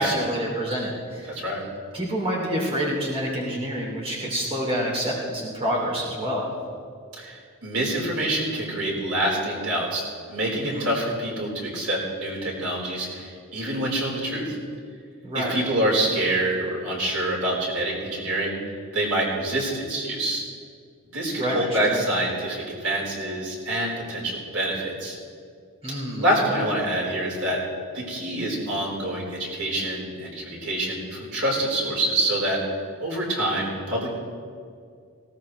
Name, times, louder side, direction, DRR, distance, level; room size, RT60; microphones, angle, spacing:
voice 1, 0.0-1.3 1.9-6.5 10.6-10.9 15.2-15.5 21.4-21.9 25.8-26.2, equal, 25° right, -3 dB, 2.9 m, -27 dB
voice 2, 1.3-1.6 7.2-10.0 10.3-14.6 15.3-18.6 18.9-20.4 21.1-25.2 26.2-27.6 27.9-32.6 33.0-34.1, right 1 dB, 90° right, -3 dB, 4.3 m, -26 dB
18.5 x 17.5 x 3.2 m, 2.2 s
head